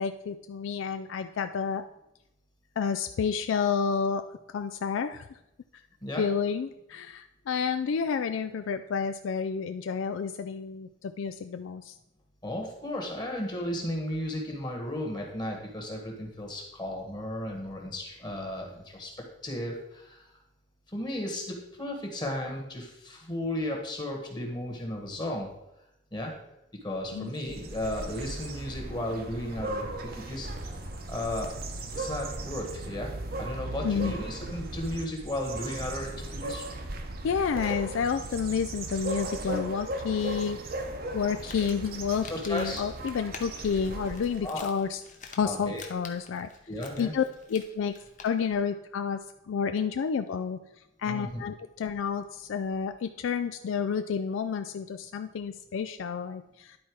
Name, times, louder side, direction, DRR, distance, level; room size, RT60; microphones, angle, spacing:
voice 1, 0.0-1.8 2.8-4.2 4.5-5.2 6.2-11.9 27.1-27.3 33.8-34.1 37.2-40.6 41.1-45.0 45.4-46.5 47.0-47.2 47.5-47.9 48.2-49.2 49.5-50.6 51.0-56.8, left 6 dB, 75° left, 9 dB, 0.3 m, -30 dB
voice 2, 12.4-19.1 19.4-20.3 20.9-25.5 26.1-26.3 26.8-30.5 30.7-31.5 31.9-36.7 42.3-42.8 44.4-44.7 45.4-45.8 46.7-47.1 51.0-51.4, left 1 dB, 20° left, 1 dB, 1.4 m, -34 dB
Gafarró Adrián Lídia i Shelly, 27.3-44.6, right 2 dB, 45° right, 0.8 m, -37 dB
Crumpling crinkling, 41.2-48.6, left 5 dB, 35° left, 0.8 m, -49 dB
10.5 x 4.3 x 4.6 m, 0.88 s
head